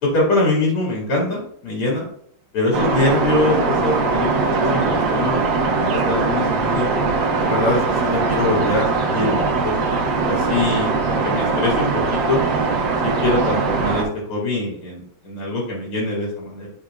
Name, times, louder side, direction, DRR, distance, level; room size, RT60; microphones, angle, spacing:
voice 1, 0.0-2.1 2.5-4.3 4.6-5.4 5.7-6.9 7.4-9.7 10.3-12.4 13.0-16.7, left 2 dB, 90° left, -5 dB, 3.2 m, -23 dB
sound 1, 2.7-14.0, right 4 dB, 60° right, 1.7 m, -21 dB
10.0 x 5.1 x 2.4 m, 0.64 s
omnidirectional pair, 2.4 m